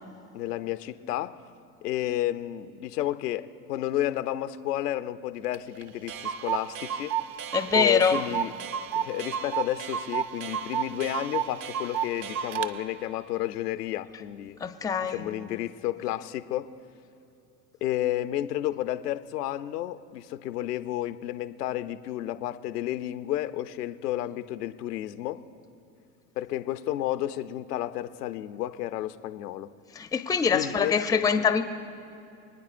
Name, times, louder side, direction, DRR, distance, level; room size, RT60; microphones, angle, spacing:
voice 1, 0.3-1.4 1.8-7.2 7.7-8.5 9.0-14.6 15.1-16.7 17.8-25.4 26.4-29.7 30.5-31.0 31.4-31.5, left 13 dB, 90° left, 12 dB, 0.6 m, -31 dB
Clock, 5.5-5.6 5.8-5.9 6.1-12.7, right 8 dB, 45° right, 0.6 m, -31 dB
voice 2, 7.5-8.2 14.6-15.2 30.0-31.6, left 6 dB, 10° left, 9 dB, 0.4 m, -24 dB
25.5 x 9.5 x 2.5 m, 2.7 s
hypercardioid pair, 85°, 46 cm